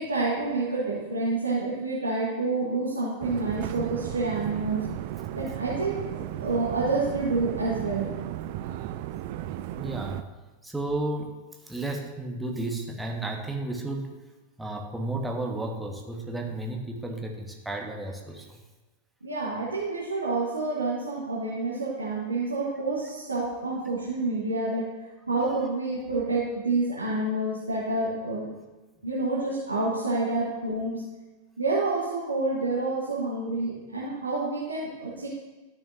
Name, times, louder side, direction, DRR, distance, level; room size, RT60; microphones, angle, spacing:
voice 1, 0.0-4.8 5.3-8.0 19.2-28.5 29.0-31.0 31.6-35.3, right 3 dB, 80° right, -6 dB, 1.4 m, -28 dB
sound 1, 3.2-10.2, right 12 dB, 50° right, 0.3 m, -35 dB
voice 2, 9.8-10.3 10.6-11.4 11.6-14.1 14.6-18.6 30.2-30.3, right 2 dB, 5° right, 1 dB, 1.2 m, -33 dB
12.5 x 6.0 x 2.7 m, 1.2 s
figure-of-eight pair, 90°, 0 cm